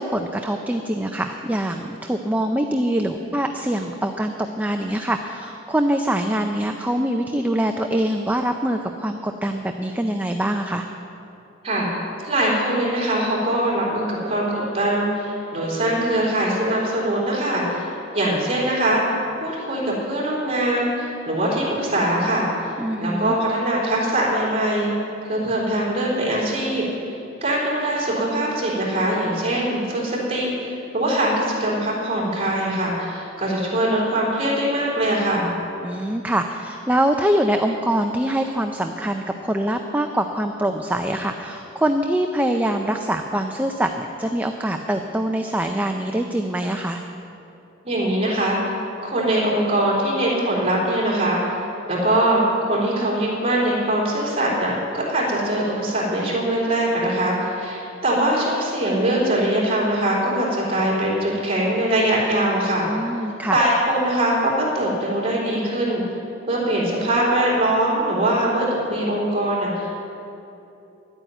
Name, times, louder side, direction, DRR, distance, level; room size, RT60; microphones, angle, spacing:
voice 1, 0.0-10.9 22.8-23.3 35.8-47.0 62.9-63.6, right 1 dB, 10° right, 4 dB, 0.5 m, -24 dB
voice 2, 12.2-24.9 25.3-35.5 47.8-48.8 49.0-51.6 51.9-63.0 63.5-66.0 66.5-70.1, right 1 dB, 30° right, -4 dB, 3.7 m, -22 dB
12.0 x 9.1 x 9.1 m, 2.9 s
head